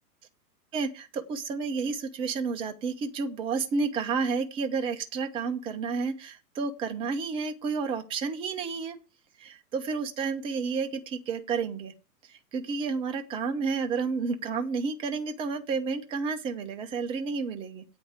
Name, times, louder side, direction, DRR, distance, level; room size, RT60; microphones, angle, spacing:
voice 1, 0.7-9.0 9.4-11.9 12.3-17.8, right 5 dB, 10° right, 7 dB, 0.5 m, -31 dB
8.4 x 5.3 x 7.8 m, 0.30 s
hypercardioid pair, 125°, 49 cm